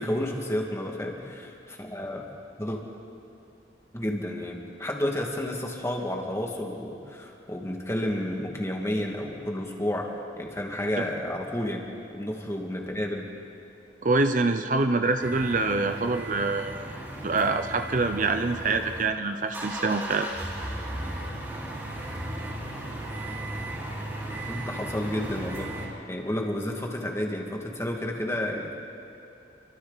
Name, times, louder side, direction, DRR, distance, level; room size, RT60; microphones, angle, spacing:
voice 1, 0.0-2.2 2.6-2.8 3.9-11.9 12.1-13.3 24.5-28.7, left 1 dB, 15° left, 0 dB, 2.2 m, -31 dB
voice 2, 14.0-16.9 17.2-20.3, right 3 dB, 45° right, 7 dB, 0.7 m, -25 dB
sound 1, 15.2-19.0 19.3-25.9, right 1 dB, 15° right, 4.9 m, -36 dB
28.5 x 25.0 x 4.1 m, 2.7 s
head